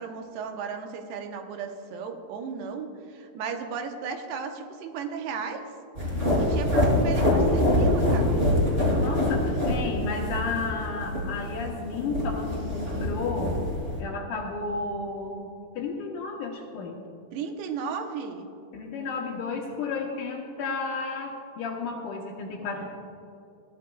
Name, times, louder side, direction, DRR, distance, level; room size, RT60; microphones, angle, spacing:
voice 1, 0.0-5.7 6.4-8.4 17.3-18.5, right 6 dB, 85° right, 5 dB, 3.0 m, -35 dB
sound 1, 5.9-14.0, left 1 dB, 15° right, 2.6 m, -25 dB
voice 2, 9.0-13.5 14.0-15.5 15.8-17.0 18.7-22.9, left 4 dB, 70° left, 0 dB, 2.2 m, -32 dB
20.5 x 14.0 x 2.3 m, 2.7 s
omnidirectional pair, 4.7 m